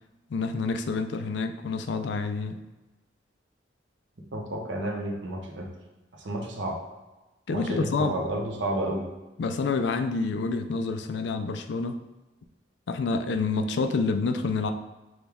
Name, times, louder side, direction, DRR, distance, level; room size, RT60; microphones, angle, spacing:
voice 1, 0.3-2.6 7.5-8.2 9.4-12.0 12.9-14.7, left 4 dB, 75° left, 8 dB, 0.4 m, -28 dB
voice 2, 4.3-5.7 6.1-6.8 7.5-9.1, right 1 dB, 85° right, 1 dB, 0.9 m, -31 dB
6.2 x 2.3 x 3.5 m, 1.1 s
head